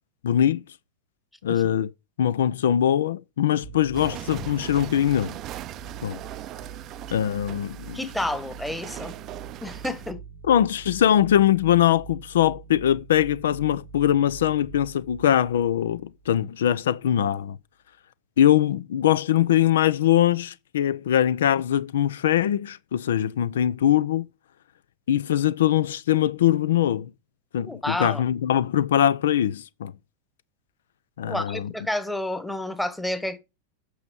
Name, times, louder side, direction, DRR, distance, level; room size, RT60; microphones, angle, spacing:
voice 1, 0.2-0.6 1.4-1.9 2.2-5.4 6.0-6.2 7.1-8.0 10.4-17.6 18.4-24.3 25.1-27.1 27.5-29.9 31.2-31.7, left 11 dB, 60° left, 0.6 m, -22 dB
sound 1, 3.6-16.8, right 6 dB, 90° left, 2.9 m, -44 dB
sound 2, 3.9-10.1, right 13 dB, 35° right, 0.6 m, -40 dB
voice 2, 7.9-9.1 9.6-10.2 27.6-28.2 31.3-33.4, left 1 dB, 5° left, 1.3 m, -30 dB
8.3 x 6.4 x 5.2 m
figure-of-eight pair, 90°, 0 cm